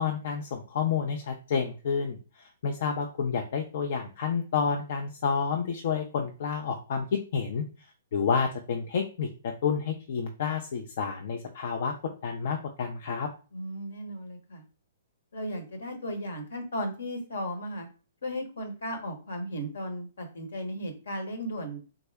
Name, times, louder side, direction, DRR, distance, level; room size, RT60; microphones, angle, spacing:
voice 1, 0.0-7.6 8.1-11.9 12.2-13.3, left 6 dB, 60° left, 4 dB, 0.4 m, -29 dB
voice 2, 13.5-14.6 15.3-17.9 18.2-21.8, equal, 75° left, 5 dB, 1.0 m, -35 dB
3.5 x 2.0 x 3.3 m, 0.35 s
hypercardioid pair, 125°, 0 cm